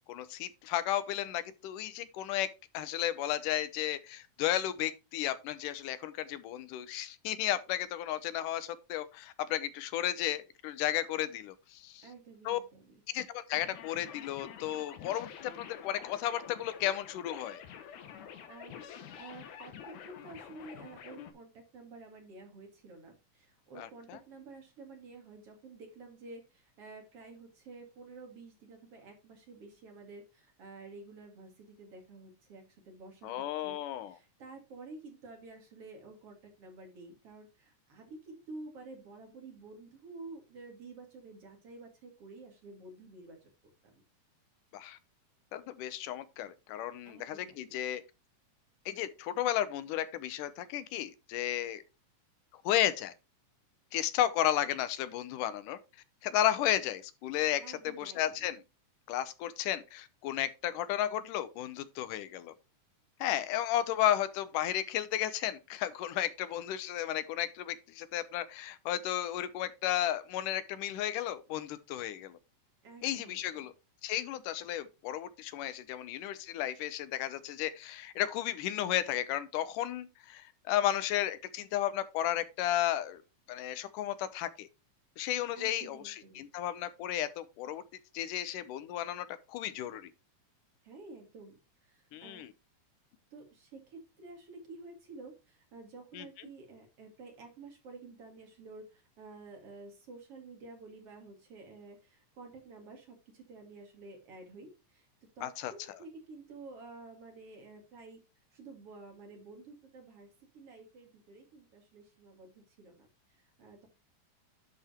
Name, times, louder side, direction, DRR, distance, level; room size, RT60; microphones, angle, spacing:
voice 1, 0.1-2.5 2.7-12.0 12.5-12.6 13.1-17.6 23.8-24.2 33.2-34.1 44.7-45.0 45.5-48.0 48.9-51.8 52.6-53.1 53.9-55.8 56.2-58.6 59.1-62.5 63.2-72.4 73.0-73.7 74.0-83.2 83.5-84.7 85.2-87.8 88.1-90.1 92.1-92.5 96.1-96.3 105.4-105.7, left 12 dB, 85° left, 2.4 m, -33 dB
voice 2, 12.0-13.0 18.5-43.5 43.8-44.0 47.0-47.6 57.6-58.5 72.8-73.7 85.5-86.4 90.8-92.4 93.3-105.1 105.4-108.2 108.5-110.3 110.5-113.9, right 3 dB, 50° right, 3.0 m, -51 dB
sound 1, 13.5-21.3, left 8 dB, 70° left, 2.5 m, -48 dB
11.0 x 4.9 x 4.3 m
omnidirectional pair, 3.6 m